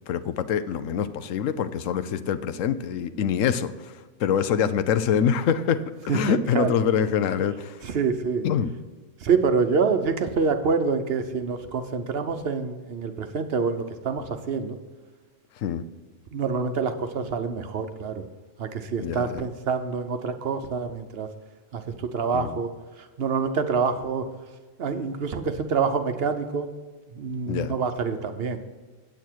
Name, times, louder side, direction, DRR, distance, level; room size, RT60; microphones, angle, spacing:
voice 1, 0.1-7.8 8.4-8.7 15.6-15.8 19.0-19.5 22.3-22.6 27.5-27.7, left 8 dB, 75° left, 12 dB, 1.0 m, -25 dB
voice 2, 6.1-6.7 7.8-8.5 9.2-14.8 16.3-18.2 18.6-21.3 21.7-22.7 23.0-24.3 24.8-26.7 27.1-28.6, right 5 dB, 55° right, 8 dB, 0.9 m, -26 dB
8.9 x 8.3 x 4.5 m, 1.3 s
omnidirectional pair, 1.4 m